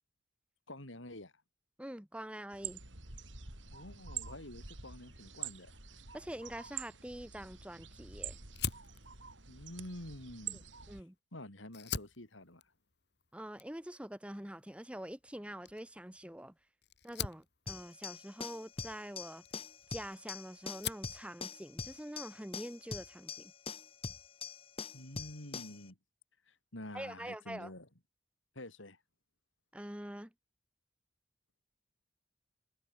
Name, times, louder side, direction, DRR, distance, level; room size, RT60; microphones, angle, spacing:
voice 1, 0.7-1.3 3.7-5.7 9.5-10.6 11.3-12.6 24.9-26.0 26.5-27.9 28.5-29.0, left 1 dB, 85° left, 5.0 m, -48 dB
voice 2, 1.8-2.8 6.1-8.4 10.9-11.1 13.3-16.5 17.0-19.4 19.9-23.5 26.9-27.7 29.7-30.3, right 1 dB, 5° right, 1.0 m, -45 dB
sound 1, 2.5-11.0, right 8 dB, 75° right, 4.6 m, -47 dB
Fire, 8.5-11.2 11.6-20.3 20.6-21.2, left 7 dB, 60° left, 3.4 m, -45 dB
sound 2, 17.7-25.8, left 5 dB, 30° left, 1.0 m, -44 dB
head